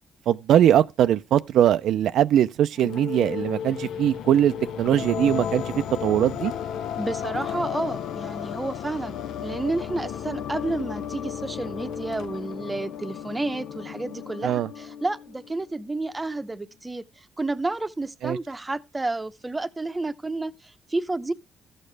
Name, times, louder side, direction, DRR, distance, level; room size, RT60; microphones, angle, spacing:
voice 1, 0.3-6.5 14.4-14.7 18.2-18.4, right 10 dB, 75° right, 0.4 m, -21 dB
sound 1, 2.8-15.7, left 8 dB, 75° left, 0.5 m, -34 dB
voice 2, 7.0-21.3, right 2 dB, 15° right, 0.7 m, -31 dB
14.5 x 6.6 x 3.3 m
cardioid pair, 90°, 0 cm